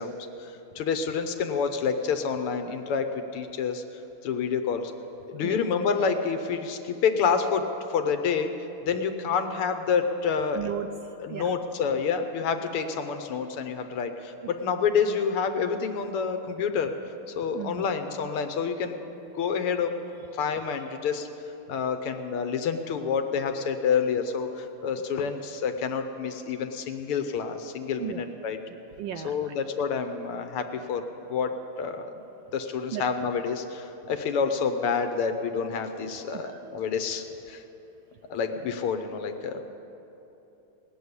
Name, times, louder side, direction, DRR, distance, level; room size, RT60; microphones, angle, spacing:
voice 1, 0.0-3.8 4.2-4.9 5.3-8.5 8.8-10.7 11.2-19.9 20.3-21.3 21.7-28.6 29.2-31.0 31.3-32.1 32.5-37.6 38.3-39.6, left 6 dB, 90° left, 7 dB, 1.8 m, -28 dB
voice 2, 10.6-11.6 14.4-14.6 17.5-17.8 28.0-28.3 29.0-29.5 32.9-33.0 36.3-36.6, right 10 dB, 75° right, 7 dB, 1.0 m, -36 dB
18.5 x 7.1 x 9.6 m, 3.0 s
omnidirectional pair, 2.4 m